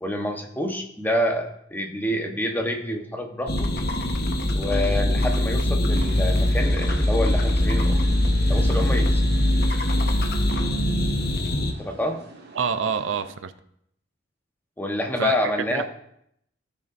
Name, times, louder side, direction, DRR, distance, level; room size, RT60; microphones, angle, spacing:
voice 1, 0.0-3.7 4.5-8.1 8.5-9.2 11.8-12.2 14.8-15.8, left 1 dB, 10° left, 3 dB, 1.0 m, -27 dB
sound 1, 3.5-11.7, left 1 dB, 55° left, 1.1 m, -22 dB
sound 2, 5.9-13.3, right 2 dB, 55° right, 1.6 m, -45 dB
voice 2, 12.5-13.5 15.2-15.4 15.7-15.8, right 6 dB, 85° right, 11 dB, 0.5 m, -26 dB
16.5 x 6.7 x 2.6 m, 0.72 s
head